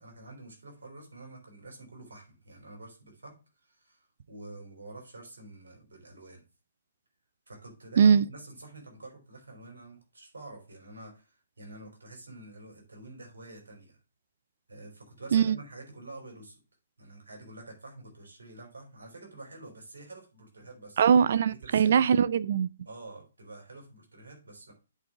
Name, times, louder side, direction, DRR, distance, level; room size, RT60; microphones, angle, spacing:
voice 1, 0.0-6.4 7.5-14.0 14.7-16.6 17.0-21.0 21.5-22.1 22.9-24.7, right 2 dB, 85° right, 3.7 m, -48 dB
voice 2, 21.0-22.7, right 7 dB, 60° right, 0.3 m, -21 dB
8.2 x 3.7 x 5.8 m
hypercardioid pair, 140°, 0 cm